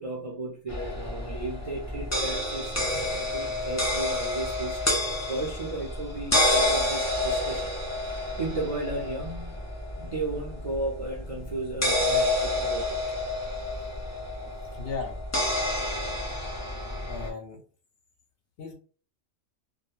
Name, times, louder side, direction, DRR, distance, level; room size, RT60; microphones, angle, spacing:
voice 1, 0.0-4.9 5.3-9.6 10.0-13.0, right 2 dB, 55° right, -3 dB, 0.3 m, -35 dB
sound 1, 0.7-17.3, left 1 dB, 25° left, 0.3 m, -29 dB
voice 2, 14.8-15.2 17.1-17.6 18.6-18.7, left 4 dB, 60° left, 2 dB, 0.7 m, -35 dB
2.2 x 2.1 x 3.0 m, 0.39 s
omnidirectional pair, 1.4 m